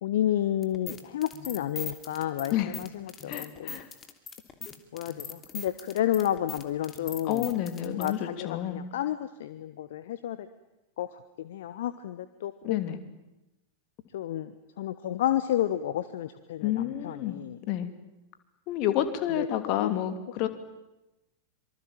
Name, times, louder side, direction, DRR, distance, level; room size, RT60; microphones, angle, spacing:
voice 1, 0.0-3.8 4.9-7.5 7.8-10.5 11.0-12.8 14.1-17.6 19.4-19.9, left 11 dB, 55° left, 12 dB, 1.2 m, -31 dB
sound 1, 0.6-8.1, left 6 dB, 25° left, 2.9 m, -41 dB
voice 2, 3.3-3.9 7.2-8.8 12.6-13.0 16.6-17.4 17.7-17.9 18.7-20.5, left 11 dB, 40° left, 9 dB, 2.9 m, -29 dB
26.0 x 25.0 x 9.1 m, 0.99 s
figure-of-eight pair, 90°, 0 cm